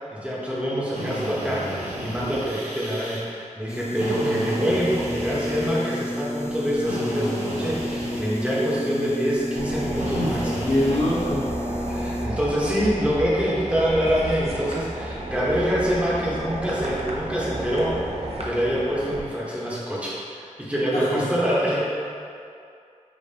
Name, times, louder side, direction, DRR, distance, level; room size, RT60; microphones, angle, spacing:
voice 1, 0.1-10.7 11.9-21.8, equal, 10° right, -7 dB, 1.0 m, -25 dB
Drill, 0.9-3.2 3.9-6.2 6.8-8.7 9.9-11.3, right 1 dB, 75° right, 1.0 m, -33 dB
sound 1, 3.7-12.3, left 1 dB, 20° left, 0.5 m, -31 dB
sound 2, 9.5-19.2, right 1 dB, 50° right, 0.6 m, -32 dB
voice 2, 10.6-11.5 20.9-21.3, left 1 dB, 60° left, -8 dB, 1.0 m, -24 dB
5.1 x 2.9 x 2.8 m, 2.5 s
wide cardioid pair, 55°, 13 cm